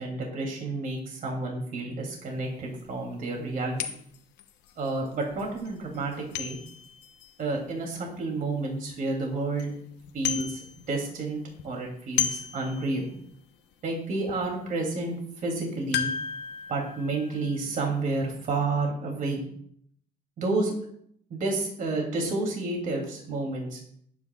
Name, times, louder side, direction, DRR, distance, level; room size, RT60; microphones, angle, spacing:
voice 1, 0.0-3.8 4.8-6.6 7.4-9.7 10.1-10.6 10.9-11.4 11.6-13.1 13.8-15.2 15.4-16.1 16.7-19.4 20.4-20.7 21.3-23.8, right 2 dB, 55° right, 0 dB, 3.0 m, -30 dB
sound 1, 2.3-2.4 2.9-3.0 3.8-8.5 9.0-9.1 9.4-9.7 10.0-11.1 11.4-13.3 13.7-13.8 14.3-14.5 15.9-18.3 18.6-18.7, left 8 dB, 85° left, 1.1 m, -35 dB
20.5 x 9.0 x 2.5 m, 0.66 s
cardioid pair, 110°, 17 cm